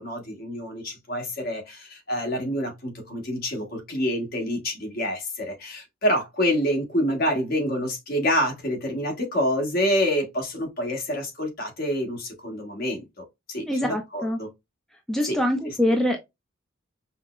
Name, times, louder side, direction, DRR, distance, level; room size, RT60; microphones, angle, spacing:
voice 1, 0.0-13.0 13.5-14.5 15.2-15.4 15.6-15.7, equal, 50° left, 1.4 m, -27 dB
voice 2, 13.7-14.4 15.1-16.2, left 1 dB, ahead, 0.4 m, -24 dB
5.2 x 2.0 x 2.4 m
head